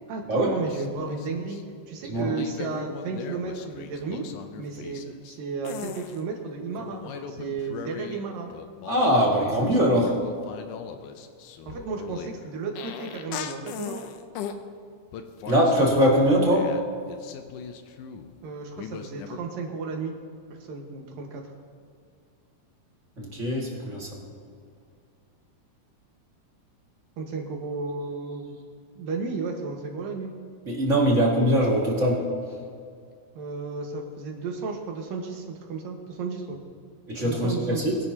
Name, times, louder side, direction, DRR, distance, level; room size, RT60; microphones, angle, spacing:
voice 1, 0.1-1.6 1.9-4.3 4.6-8.5 11.7-14.0 18.4-20.1 20.6-21.4 27.2-28.5 29.0-30.4 33.3-36.6 37.2-37.9, right 4 dB, 85° right, 1 dB, 3.2 m, -33 dB
sound 1, 0.6-1.6 2.1-5.4 5.6-6.2 6.8-8.3 8.5-14.6 15.1-18.4 18.8-19.4, left 8 dB, 75° left, 2.2 m, -39 dB
voice 2, 8.8-10.2 15.5-16.8 23.2-24.2 30.7-32.3 37.1-38.0, equal, 25° right, -3 dB, 1.9 m, -22 dB
22.0 x 11.0 x 2.9 m, 2.2 s
omnidirectional pair, 3.9 m